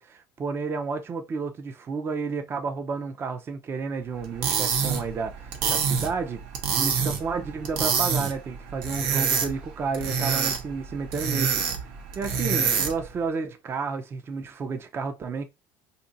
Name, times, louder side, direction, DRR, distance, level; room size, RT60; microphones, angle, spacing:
voice 1, 0.0-6.4 6.8-11.7 12.2-15.4, right 4 dB, 30° right, 0.6 m, -31 dB
sound 1, 4.2-13.1, right 6 dB, 75° right, 1.0 m, -27 dB
2.6 x 2.6 x 3.9 m
supercardioid pair, 120°, 8 cm